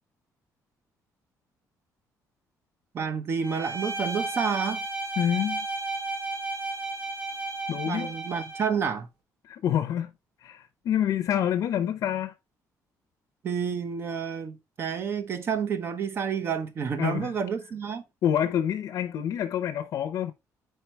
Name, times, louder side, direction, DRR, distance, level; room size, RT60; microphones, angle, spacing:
voice 1, 2.9-4.8 7.9-9.1 13.4-18.0, right 6 dB, 40° right, 0.8 m, -29 dB
Bowed string instrument, 3.4-8.8, right 2 dB, 85° right, 1.3 m, -33 dB
voice 2, 5.2-5.7 7.7-8.1 9.4-10.1 10.4-12.3 17.0-17.3 18.2-20.3, left 10 dB, 60° left, 0.6 m, -27 dB
4.6 x 4.6 x 4.4 m
cardioid pair, 160°, 6 cm